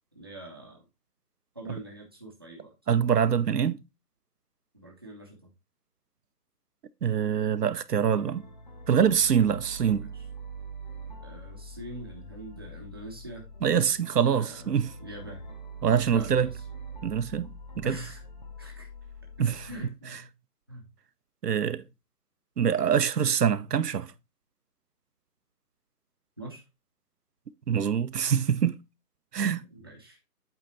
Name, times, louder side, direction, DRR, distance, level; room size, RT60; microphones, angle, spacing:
voice 1, 0.1-0.8 1.5-2.7 4.7-5.4 9.9-10.2 11.2-13.5 14.3-15.4 16.1-16.5 17.8-18.2 18.6-18.9 19.5-20.3 20.7-20.8 26.4-26.6 29.7-30.2, right 1 dB, 15° right, 0.7 m, -43 dB
voice 2, 2.9-3.8 7.0-8.4 8.9-10.1 13.6-14.9 15.8-16.5 17.0-18.0 19.4-19.6 21.4-21.8 22.6-24.1 27.7-28.8 29.3-29.6, right 8 dB, 85° right, 0.7 m, -24 dB
sound 1, 8.2-19.9, right 2 dB, 30° left, 0.7 m, -44 dB
8.1 x 3.7 x 4.1 m
figure-of-eight pair, 165°, 46 cm